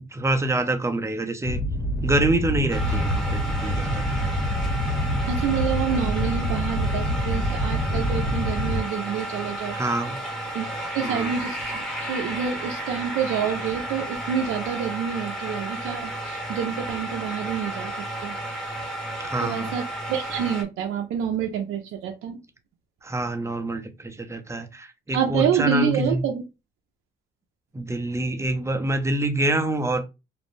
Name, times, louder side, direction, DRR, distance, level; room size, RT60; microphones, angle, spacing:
voice 1, 0.0-1.6 2.0-4.0 9.7-10.2 11.0-11.3 19.2-19.7 23.0-26.2 27.7-30.1, right 1 dB, 15° right, 0.5 m, -26 dB
sound 1, 1.4-8.8, equal, 50° left, 1.4 m, -26 dB
sound 2, 2.7-20.6, right 1 dB, 5° left, 0.8 m, -33 dB
voice 2, 5.2-9.8 10.5-10.7 10.9-17.9 18.2-18.4 19.4-22.4 25.1-26.4, right 8 dB, 80° right, 0.5 m, -27 dB
2.6 x 2.0 x 3.0 m
cardioid pair, 90°, 20 cm